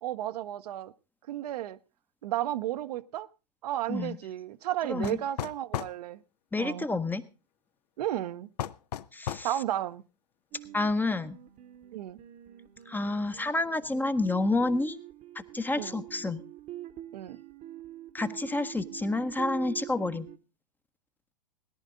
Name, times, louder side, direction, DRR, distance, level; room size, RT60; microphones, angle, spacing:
voice 1, 0.0-0.9 1.3-1.8 2.2-3.3 3.6-6.2 6.6-6.9 8.0-8.5 9.4-10.0 11.9-12.2 15.8-16.0 17.1-17.4, right 13 dB, 70° right, 0.7 m, -33 dB
voice 2, 4.8-5.2 6.5-7.3 9.1-9.5 10.7-11.4 12.9-15.0 15.3-16.4 18.1-20.3, left 2 dB, 10° left, 0.7 m, -29 dB
sound 1, 5.0-6.0 8.6-9.5, left 10 dB, 75° left, 0.6 m, -34 dB
sound 2, 10.5-20.4, right 14 dB, 35° right, 0.9 m, -45 dB
17.5 x 11.0 x 3.7 m
hypercardioid pair, 105°, 21 cm